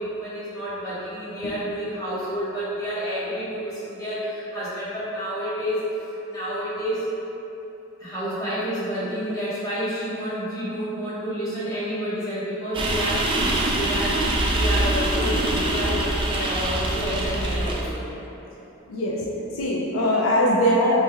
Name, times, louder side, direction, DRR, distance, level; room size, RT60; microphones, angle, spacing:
voice 1, 0.0-5.8 6.3-7.0 8.0-18.0, equal, 20° left, -12 dB, 1.2 m, -29 dB
sound 1, 12.7-17.8, right 1 dB, 25° right, 0.3 m, -24 dB
voice 2, 18.9-21.0, equal, 80° left, -3 dB, 0.4 m, -21 dB
4.0 x 3.2 x 2.3 m, 3.0 s
head